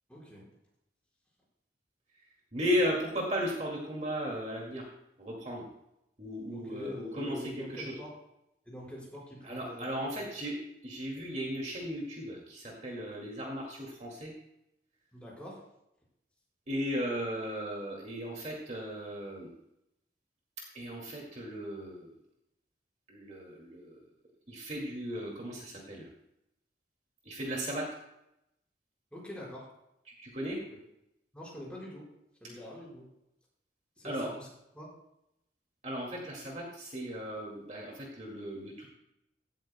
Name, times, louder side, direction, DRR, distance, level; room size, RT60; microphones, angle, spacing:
voice 1, 0.1-0.5 6.5-8.1 8.7-9.9 10.1-10.2 15.1-15.6 29.1-29.7 30.5-30.8 31.3-32.1 32.4-33.0 34.0-34.5 34.7-34.9, equal, 5° left, -5 dB, 5.0 m, -44 dB
voice 2, 2.5-4.9 5.2-5.7 6.2-8.0 9.4-10.6 10.8-14.3 16.7-19.5 20.7-22.1 23.1-24.0 24.5-26.1 27.2-27.9 30.1-30.6 32.4-32.5 34.0-34.3 35.8-38.9, equal, 40° right, -1 dB, 2.2 m, -36 dB
16.0 x 13.0 x 2.2 m, 0.83 s
head